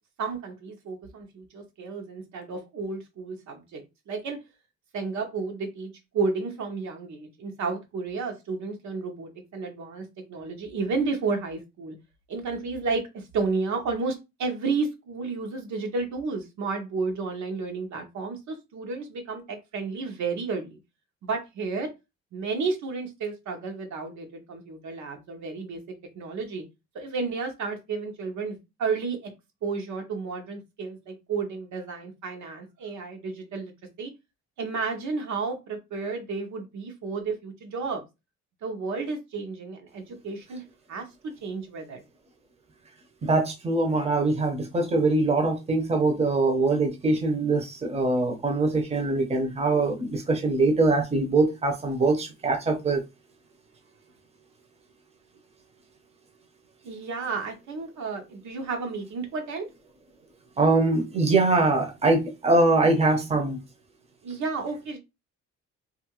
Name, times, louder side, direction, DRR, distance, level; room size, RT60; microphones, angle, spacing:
voice 1, 0.2-4.4 4.9-12.0 12.3-20.8 21.2-21.9 22.3-25.8 26.1-26.6 26.9-29.3 29.6-33.7 34.0-34.1 34.6-38.0 38.6-40.6 40.9-42.0 56.8-59.7 64.2-65.0, right 4 dB, 70° right, 0.8 m, -32 dB
voice 2, 43.2-53.0 60.6-63.6, right 3 dB, 20° right, 0.8 m, -23 dB
2.7 x 2.5 x 2.9 m
cardioid pair, 90°, 30 cm